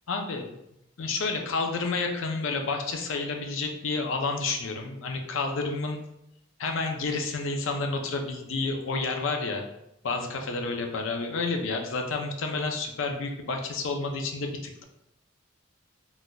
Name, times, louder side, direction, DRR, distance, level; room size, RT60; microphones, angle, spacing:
voice 1, 0.1-0.5 1.0-6.0 6.6-9.6 10.0-14.8, left 3 dB, 65° left, 3 dB, 0.4 m, -30 dB
3.9 x 2.4 x 2.2 m, 0.81 s
head